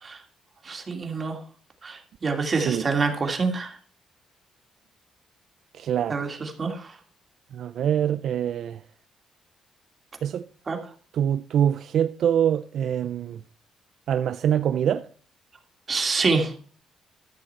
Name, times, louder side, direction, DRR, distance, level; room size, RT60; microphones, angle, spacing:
voice 1, 0.6-1.4 1.8-3.8 6.1-6.9 10.7-10.8 15.9-16.5, right 4 dB, 40° right, 2.4 m, -26 dB
voice 2, 2.5-2.9 5.7-6.2 7.5-8.8 10.2-10.5 11.1-13.4 14.1-15.1, right 9 dB, 70° right, 0.4 m, -24 dB
13.5 x 6.5 x 4.4 m
cardioid pair, 90°, 0 cm